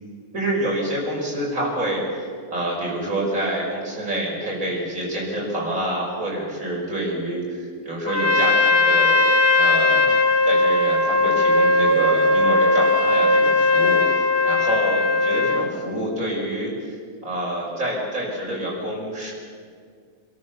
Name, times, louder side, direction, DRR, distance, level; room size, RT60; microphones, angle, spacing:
voice 1, 0.3-9.2 9.5-10.2 10.4-16.7 17.2-19.3, right 1 dB, 65° right, -3 dB, 6.3 m, -27 dB
Trumpet, 8.1-15.7, left 2 dB, 20° left, 1.0 m, -18 dB
27.5 x 13.5 x 6.9 m, 2.1 s
omnidirectional pair, 1.6 m